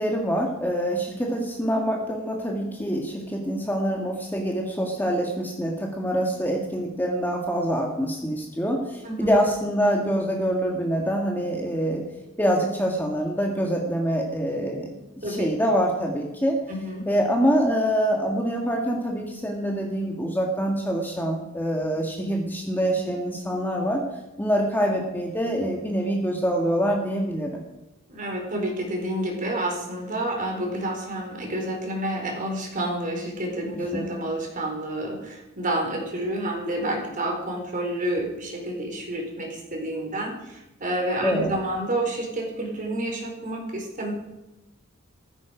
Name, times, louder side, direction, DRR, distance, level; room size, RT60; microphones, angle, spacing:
voice 1, 0.0-12.0 12.4-14.9 15.3-16.6 17.1-24.0 24.4-27.6 33.9-34.0 41.2-41.5, equal, 10° left, 1 dB, 1.8 m, -25 dB
voice 2, 16.7-17.1 28.1-44.1, right 1 dB, 40° right, 1 dB, 4.2 m, -29 dB
15.0 x 14.5 x 5.1 m, 0.97 s
head